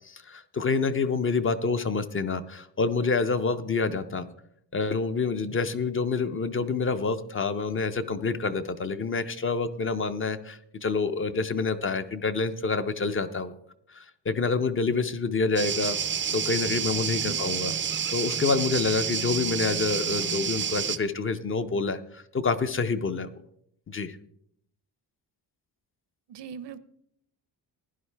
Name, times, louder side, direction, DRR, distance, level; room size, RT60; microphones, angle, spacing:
voice 1, 0.0-4.3 4.7-13.5 13.9-16.0 16.3-17.7 18.1-23.4 23.9-24.2, left 4 dB, 30° left, 10 dB, 0.5 m, -27 dB
sound 1, 15.6-21.0, right 7 dB, 30° right, 0.4 m, -29 dB
voice 2, 26.3-26.8, right 7 dB, 75° right, 14 dB, 0.8 m, -40 dB
16.0 x 11.0 x 3.3 m, 0.71 s
wide cardioid pair, 165°, 42 cm